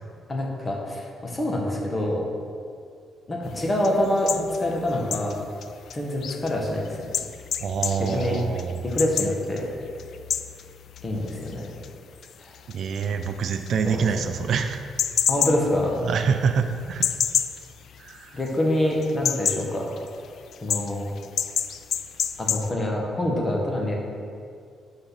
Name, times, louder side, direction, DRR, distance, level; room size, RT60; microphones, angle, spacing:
voice 1, 0.3-2.2 3.3-5.4 5.9-7.0 8.1-8.4 8.8-9.7 11.0-11.7 12.4-12.5 13.8-14.0 15.3-16.0 18.3-19.9 20.6-21.1 22.4-23.9, left 1 dB, 30° left, -1 dB, 1.5 m, -26 dB
sound 1, 3.4-18.6 18.9-22.7, left 8 dB, 65° left, 0.3 m, -30 dB
voice 2, 7.6-8.8 12.7-14.8 16.0-17.1 18.0-18.4, right 6 dB, 65° right, 7 dB, 0.4 m, -26 dB
11.5 x 4.1 x 4.0 m, 2.3 s
cardioid pair, 90°, 0 cm